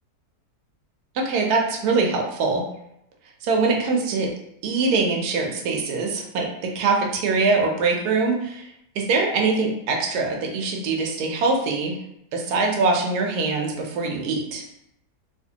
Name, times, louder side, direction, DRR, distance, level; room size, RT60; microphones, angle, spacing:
voice 1, 1.1-2.6 3.4-4.3 4.6-8.7 8.9-12.0 12.3-14.6, right 3 dB, 75° right, 1 dB, 1.2 m, -23 dB
3.3 x 2.8 x 2.8 m, 0.78 s
omnidirectional pair, 1.7 m